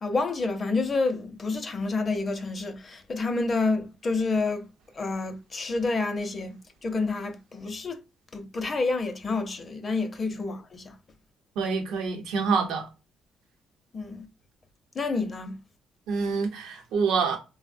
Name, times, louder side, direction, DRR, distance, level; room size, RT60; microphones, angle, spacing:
voice 1, 0.0-4.7 5.0-6.6 6.8-8.0 8.3-11.0 13.9-14.3 14.9-15.6, left 3 dB, 40° left, 0.5 m, -28 dB
voice 2, 11.6-12.9 16.1-17.4, right 5 dB, 90° right, 0.7 m, -26 dB
3.2 x 2.0 x 2.4 m
cardioid pair, 90°, 0 cm